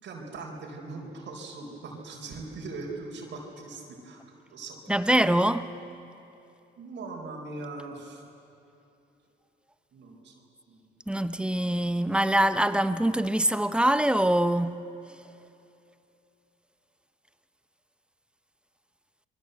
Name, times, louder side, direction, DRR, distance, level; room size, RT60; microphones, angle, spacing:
voice 1, 0.0-4.2 4.5-5.4 6.8-8.2 9.9-10.3 10.7-10.8, right 3 dB, 65° right, 4.6 m, -40 dB
voice 2, 4.9-5.7 11.1-14.8, right 1 dB, 5° right, 0.9 m, -24 dB
27.5 x 23.0 x 8.1 m
cardioid pair, 90°, 20 cm